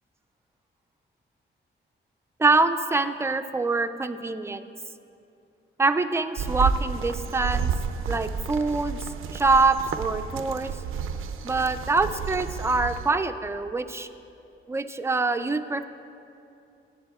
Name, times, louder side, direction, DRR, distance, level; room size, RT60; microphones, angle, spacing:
voice 1, 2.4-4.6 5.8-7.7 8.1-9.0 9.3-10.7 11.4-14.1 14.7-15.8, right 3 dB, 15° right, 9 dB, 0.3 m, -24 dB
sound 1, 6.4-13.1, right 6 dB, 85° right, 0.4 m, -31 dB
18.0 x 7.3 x 2.3 m, 2.6 s
wide cardioid pair, 110°, 21 cm